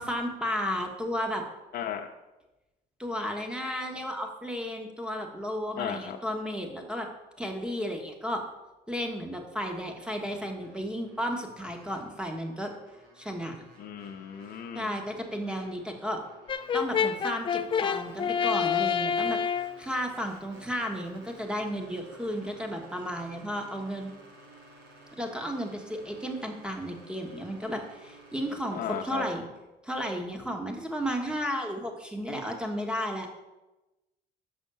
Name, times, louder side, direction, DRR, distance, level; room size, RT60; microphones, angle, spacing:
voice 1, 0.0-1.4 3.0-7.1 7.4-8.5 8.9-12.7 13.2-13.5 14.7-16.2 16.7-19.4 19.8-24.1 25.2-29.4 29.8-33.4, equal, 5° right, 3 dB, 1.4 m, -33 dB
voice 2, 1.7-2.1 5.8-6.2 13.8-14.9 28.7-29.3, left 9 dB, 65° left, 3 dB, 0.7 m, -35 dB
sound 1, 10.2-29.0, right 2 dB, 80° right, 2.3 m, -54 dB
Brass instrument, 16.5-19.8, left 7 dB, 30° left, 0.4 m, -28 dB
6.3 x 6.0 x 6.8 m, 1.0 s
cardioid pair, 110°, 17 cm